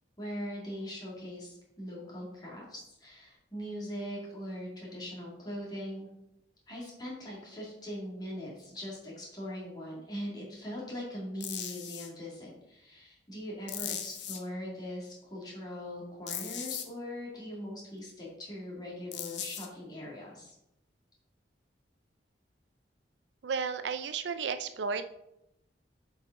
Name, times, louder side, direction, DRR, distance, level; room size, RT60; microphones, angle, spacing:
voice 1, 0.2-6.1 6.7-20.5, equal, 20° left, -4 dB, 2.3 m, -41 dB
sound 1, 11.4-12.1 13.7-14.4 16.3-16.8 19.1-19.7, left 9 dB, 70° left, 0.8 m, -38 dB
voice 2, 23.4-25.0, right 5 dB, 70° right, 10 dB, 0.4 m, -33 dB
7.5 x 4.7 x 3.8 m, 0.84 s
head